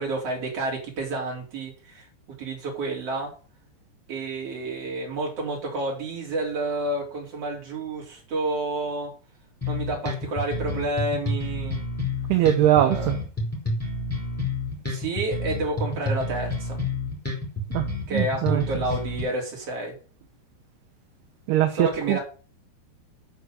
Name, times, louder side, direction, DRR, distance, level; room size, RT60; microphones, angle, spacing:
voice 1, 0.0-2.1 2.4-3.3 4.1-9.1 9.7-11.8 12.7-13.1 14.8-16.8 18.1-19.9 21.8-22.2, right 2 dB, 35° right, -1 dB, 4.5 m, -30 dB
sound 1, 9.6-19.2, left 2 dB, 5° left, 4.5 m, -29 dB
voice 2, 12.3-13.2 17.7-18.8 21.5-22.2, right 12 dB, 75° right, 6 dB, 2.8 m, -22 dB
9.2 x 6.0 x 8.0 m, 0.38 s
omnidirectional pair, 5.1 m